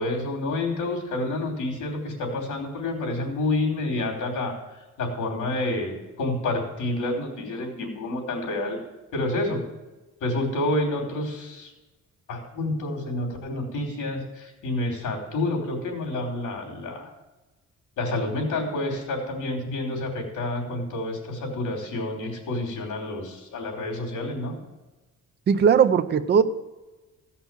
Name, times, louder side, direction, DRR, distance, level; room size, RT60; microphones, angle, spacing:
voice 1, 0.0-4.5 5.0-8.8 9.1-9.6 10.2-11.7 12.3-17.1 18.0-24.6, left 2 dB, 85° left, 1 dB, 3.2 m, -29 dB
voice 2, 25.5-26.4, right 7 dB, 35° right, 10 dB, 0.5 m, -18 dB
15.0 x 5.6 x 7.4 m, 1.1 s
cardioid pair, 160°, 30 cm